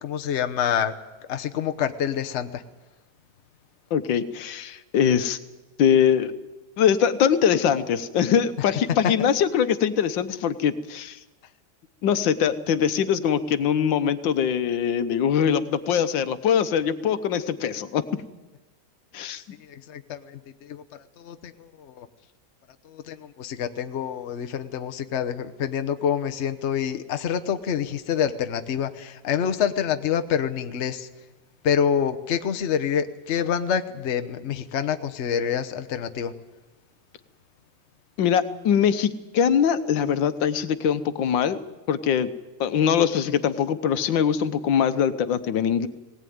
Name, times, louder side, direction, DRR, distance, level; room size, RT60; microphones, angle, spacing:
voice 1, 0.0-1.0 1.3-2.6 19.6-20.8 21.2-22.1 22.8-31.1 31.6-36.3, left 8 dB, 45° left, 7 dB, 1.1 m, -27 dB
voice 2, 3.9-5.4 5.8-6.3 6.8-11.2 12.0-18.0 19.1-19.4 38.2-41.6 41.9-42.3 42.6-45.9, left 8 dB, 90° left, 12 dB, 1.6 m, -22 dB
18.5 x 18.0 x 9.4 m, 1.1 s
omnidirectional pair, 2.0 m